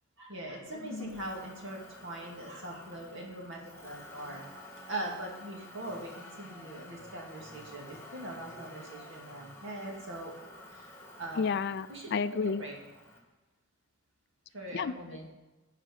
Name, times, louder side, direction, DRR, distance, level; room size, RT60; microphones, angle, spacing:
voice 1, 0.2-4.4 4.9-10.3 10.7-10.9 11.2-11.5 11.9-12.1 12.4-12.7 14.5-15.3, right 1 dB, 60° right, -1 dB, 2.3 m, -41 dB
Motor vehicle (road), 0.7-13.2, left 1 dB, 10° left, 1.7 m, -51 dB
voice 2, 11.4-12.6 14.7-14.9, left 5 dB, 50° left, 12 dB, 0.4 m, -31 dB
11.0 x 4.9 x 8.1 m, 1.2 s
head